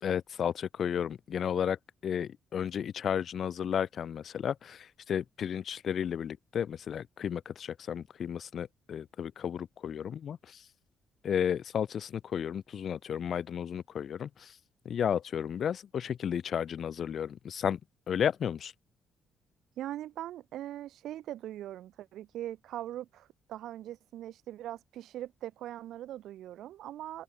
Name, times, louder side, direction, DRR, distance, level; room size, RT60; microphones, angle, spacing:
voice 1, 0.0-1.8 2.0-10.6 11.2-14.5 14.8-17.8 18.1-18.7, left 8 dB, 60° left, 1.0 m, -33 dB
voice 2, 19.8-27.2, right 13 dB, 80° right, 7.8 m, -41 dB
cardioid pair, 90°, 0 cm